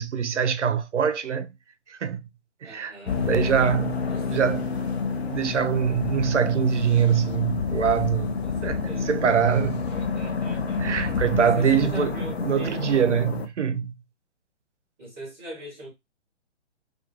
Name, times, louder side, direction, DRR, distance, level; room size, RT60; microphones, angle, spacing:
voice 1, 0.0-1.5 1.9-2.2 2.6-4.7 5.2-9.8 10.8-13.9, right 7 dB, 85° right, 0.5 m, -24 dB
voice 2, 2.6-3.2 4.1-4.3 8.4-9.2 9.9-11.1 11.3-13.1 15.0-15.9, right 1 dB, 10° right, 0.4 m, -41 dB
sound 1, 3.1-13.5, left 5 dB, 65° left, 0.6 m, -29 dB
2.3 x 2.3 x 2.8 m
figure-of-eight pair, 125°, 35 cm